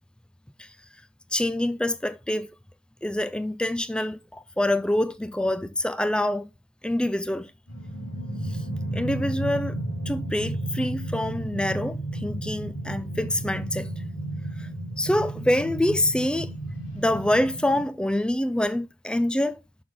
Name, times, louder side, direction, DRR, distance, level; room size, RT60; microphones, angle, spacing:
voice 1, 1.3-2.5 3.0-6.5 6.8-7.5 8.5-8.6 8.9-9.8 10.1-13.9 14.6-14.7 15.0-16.5 16.9-19.6, left 1 dB, 5° left, 0.4 m, -26 dB
sound 1, 7.7-17.8, right 1 dB, 85° left, 3.0 m, -33 dB
6.7 x 5.6 x 3.9 m
head